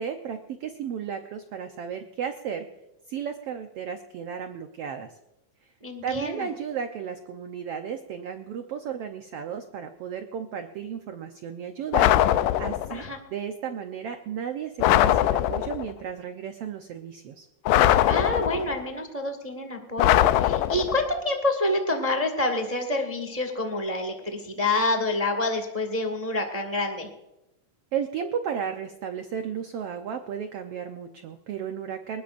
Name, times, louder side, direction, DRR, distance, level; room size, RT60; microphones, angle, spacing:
voice 1, 0.0-2.7 3.1-5.2 6.0-13.0 13.3-17.5 27.9-32.2, right 7 dB, 80° right, 6 dB, 1.3 m, -34 dB
voice 2, 5.8-6.5 12.9-13.2 18.1-27.1, left 2 dB, 20° right, 5 dB, 1.0 m, -27 dB
sound 1, 11.9-13.0 14.8-15.9 17.7-18.8 20.0-21.1, left 13 dB, 80° left, 2.2 m, -21 dB
20.0 x 20.0 x 2.6 m, 0.93 s
omnidirectional pair, 3.8 m